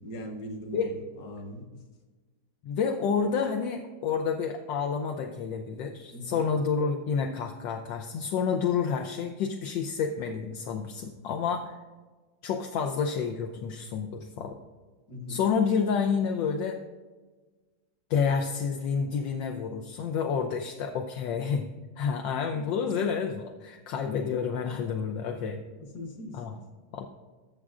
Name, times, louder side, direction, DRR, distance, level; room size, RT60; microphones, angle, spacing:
voice 1, 0.0-1.8 6.1-6.4 15.1-15.4 22.5-22.7 25.8-26.6, left 1 dB, 55° left, 3 dB, 1.7 m, -40 dB
voice 2, 2.6-11.8 12.4-14.6 15.3-16.8 18.1-25.6 26.3-26.6 26.9-27.1, left 6 dB, 75° left, 4 dB, 1.3 m, -29 dB
18.5 x 7.1 x 2.4 m, 1.3 s
omnidirectional pair, 2.2 m